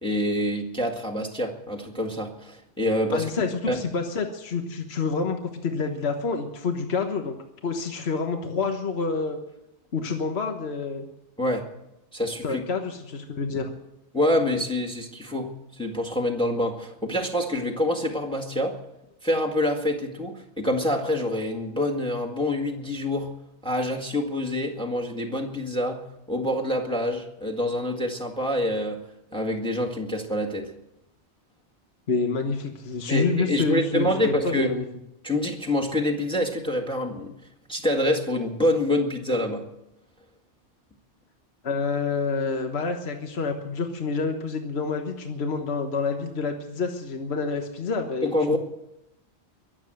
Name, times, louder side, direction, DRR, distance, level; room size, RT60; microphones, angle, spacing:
voice 1, 0.0-3.8 11.4-11.7 12.1-12.6 14.1-18.8 19.2-23.3 23.6-29.0 29.3-30.7 33.1-34.7 35.2-37.3 37.7-39.6 48.2-48.6, left 1 dB, 5° left, 3 dB, 1.8 m, -26 dB
voice 2, 3.1-7.3 7.6-9.4 9.9-11.1 12.4-13.7 32.1-34.8 41.6-48.6, left 4 dB, 65° left, 4 dB, 1.5 m, -28 dB
22.5 x 7.6 x 7.8 m, 0.88 s
omnidirectional pair, 1.2 m